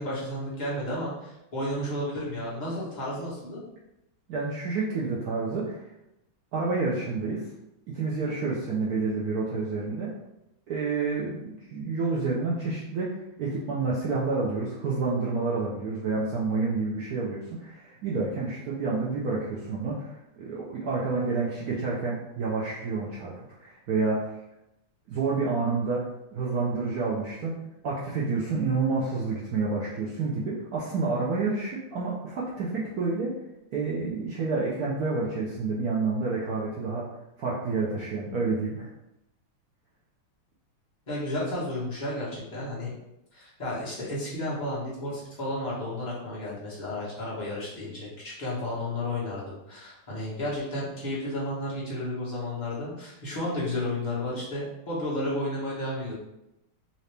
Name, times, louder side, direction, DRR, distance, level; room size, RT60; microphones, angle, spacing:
voice 1, 0.0-3.6 41.1-42.9 43.3-56.1, left 1 dB, 25° left, -8 dB, 1.1 m, -32 dB
voice 2, 4.3-5.8 6.5-7.5 7.9-10.1 10.7-24.3 25.1-27.6 27.8-33.4 33.7-37.1 37.4-38.9, right 4 dB, 70° right, -5 dB, 0.9 m, -29 dB
3.8 x 2.8 x 3.3 m, 0.88 s
omnidirectional pair, 2.3 m